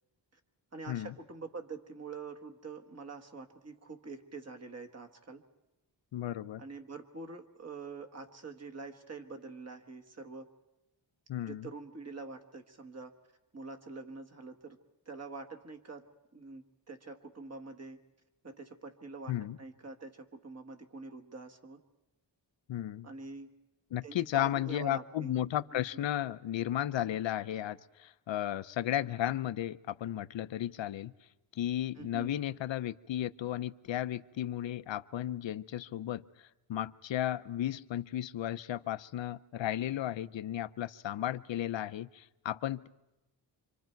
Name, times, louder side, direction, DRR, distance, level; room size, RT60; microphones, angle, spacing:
voice 1, 0.7-5.4 6.6-10.5 11.4-13.1 13.5-14.8 15.0-16.1 16.3-18.0 18.4-21.8 23.0-23.5 24.0-25.4 25.7-25.9 31.9-32.3, right 4 dB, 35° right, 4 dB, 1.5 m, -45 dB
voice 2, 6.1-6.6 11.3-11.7 19.3-19.6 22.7-23.1 23.9-31.1 31.6-36.2 36.7-42.9, left 12 dB, 85° left, 15 dB, 0.7 m, -34 dB
26.5 x 25.5 x 4.6 m, 0.97 s
wide cardioid pair, 160°, 44 cm